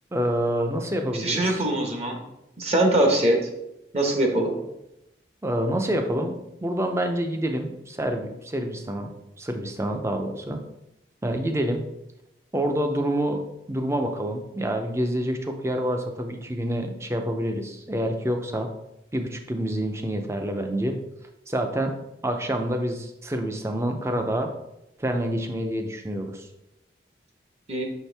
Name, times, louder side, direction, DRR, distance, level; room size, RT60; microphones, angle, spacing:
voice 1, 0.1-1.6 5.4-9.1 9.4-10.6 11.2-11.8 12.5-13.4 13.7-18.7 19.1-21.0 21.5-22.0 22.2-24.5 25.0-26.5, right 1 dB, 15° right, 5 dB, 0.6 m, -27 dB
voice 2, 1.1-2.2 2.6-3.5 3.9-4.5 27.7-27.9, right 1 dB, 35° right, 2 dB, 1.0 m, -22 dB
6.4 x 4.5 x 3.4 m, 0.88 s
head